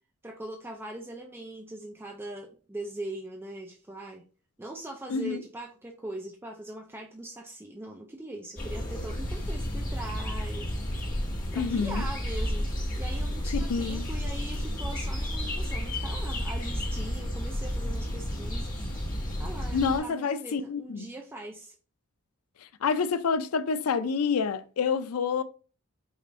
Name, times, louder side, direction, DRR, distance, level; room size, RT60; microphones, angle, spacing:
voice 1, 0.2-4.2 4.6-10.8 11.5-18.9 19.4-21.8, right 1 dB, 10° right, 0.4 m, -41 dB
voice 2, 5.1-5.4 11.6-12.0 13.5-14.0 19.7-21.1 22.6-25.4, left 5 dB, 85° left, 0.4 m, -28 dB
sound 1, 8.6-20.0, equal, 40° left, 1.4 m, -32 dB
5.0 x 2.5 x 3.1 m
head